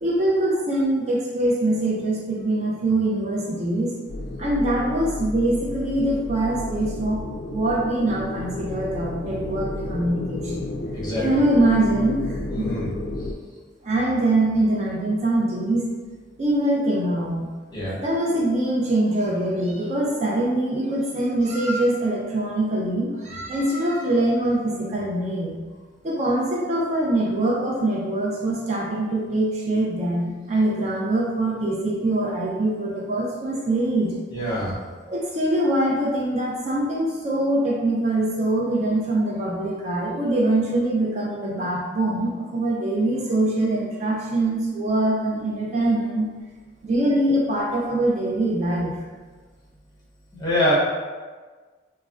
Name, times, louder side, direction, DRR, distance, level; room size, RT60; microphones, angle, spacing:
voice 1, 0.0-3.9 4.4-7.2 7.5-10.7 11.2-12.7 13.8-15.8 16.4-17.5 18.0-25.6 26.0-34.1 35.1-46.3 46.8-48.9, right 1 dB, 35° right, -4 dB, 0.4 m, -23 dB
sound 1, 4.1-13.3, left 2 dB, 75° left, 0.3 m, -32 dB
voice 2, 10.9-11.3 12.5-12.9 17.7-17.9 34.3-34.7 50.3-50.7, left 1 dB, 20° left, -7 dB, 0.6 m, -24 dB
3.5 x 2.1 x 2.3 m, 1.4 s
head